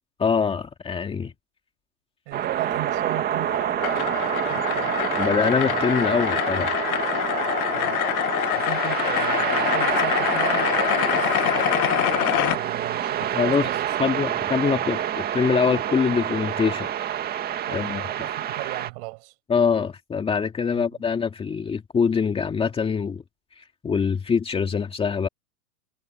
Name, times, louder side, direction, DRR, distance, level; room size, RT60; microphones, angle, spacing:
voice 1, 0.2-1.3 5.2-6.7 13.3-13.7 14.0-16.9 17.7-18.0 19.5-23.2 23.6-25.3, left 6 dB, 10° left, 2.3 m, -24 dB
voice 2, 1.0-1.3 2.3-5.0 7.7-8.1 8.5-11.6 12.5-14.2 17.7-19.3 20.7-21.0, right 31 dB, 40° right, 7.1 m, -37 dB
sound 1, 2.3-18.9, right 10 dB, 20° right, 2.0 m, -27 dB
sound 2, 3.1-12.6, left 15 dB, 60° left, 1.4 m, -25 dB
hypercardioid pair, 140°, 50 cm